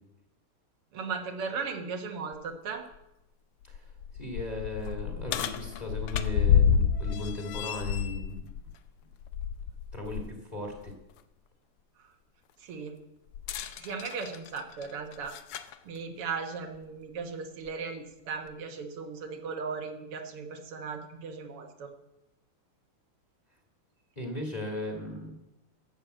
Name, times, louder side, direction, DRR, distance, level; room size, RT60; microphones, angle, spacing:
voice 1, 0.9-2.8 12.6-12.9 13.8-15.4 15.9-21.9, right 5 dB, 85° right, 4 dB, 2.3 m, -37 dB
sound 1, 2.3-2.4 2.9-3.0 3.6-10.3 10.7-10.9 13.3-15.8 16.7-16.8 17.7-17.8, left 8 dB, 85° left, 1.7 m, -29 dB
voice 2, 4.2-8.5 9.9-10.9 24.2-25.3, left 1 dB, 20° left, 2 dB, 2.1 m, -37 dB
12.5 x 7.2 x 7.9 m, 0.91 s
omnidirectional pair, 2.4 m